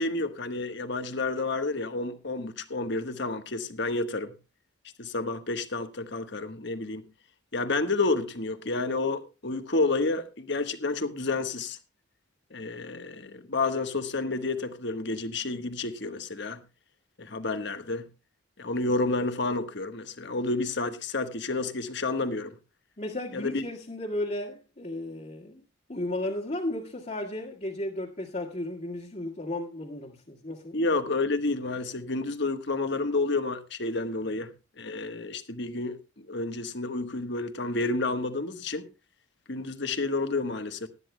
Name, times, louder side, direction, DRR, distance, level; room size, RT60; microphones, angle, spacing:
voice 1, 0.0-4.3 5.0-7.0 7.5-11.8 12.5-16.6 17.2-18.1 18.6-22.5 23.3-23.6 30.7-34.5 34.8-38.9 39.5-40.9, left 3 dB, 55° left, 1.3 m, -30 dB
voice 2, 23.0-25.6 25.9-30.8 34.2-34.4, left 1 dB, 40° left, 1.8 m, -34 dB
19.0 x 12.5 x 2.2 m
head